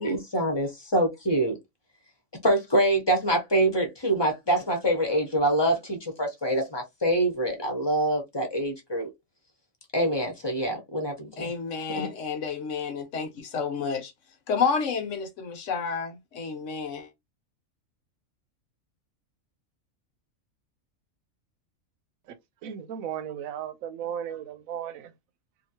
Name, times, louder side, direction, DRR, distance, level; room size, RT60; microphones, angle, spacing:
voice 1, 0.0-1.5 2.4-9.1 9.9-11.5 12.0-12.1, right 1 dB, 25° left, 0.7 m, -25 dB
voice 2, 11.4-14.1 14.5-17.1, left 5 dB, 70° left, 1.1 m, -30 dB
voice 3, 22.6-25.1, right 9 dB, 85° right, 1.0 m, -35 dB
2.8 x 2.5 x 2.7 m
omnidirectional pair, 1.4 m